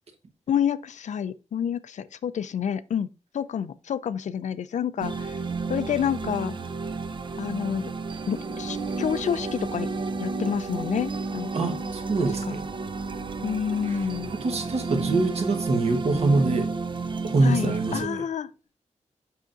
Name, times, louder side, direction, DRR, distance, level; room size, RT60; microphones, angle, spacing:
voice 1, 0.5-3.1 3.3-5.4 5.7-6.6 7.4-7.9 8.3-9.9 10.2-11.7 12.5-12.6 13.4-14.3 17.4-18.5, left 8 dB, 75° left, 0.5 m, -29 dB
sound 1, 5.0-18.0, right 4 dB, 40° right, 0.6 m, -31 dB
voice 2, 11.5-12.6 13.8-14.0 14.3-16.7 17.2-18.2, right 3 dB, 55° right, 1.3 m, -24 dB
7.5 x 5.8 x 2.5 m
wide cardioid pair, 155°, 12 cm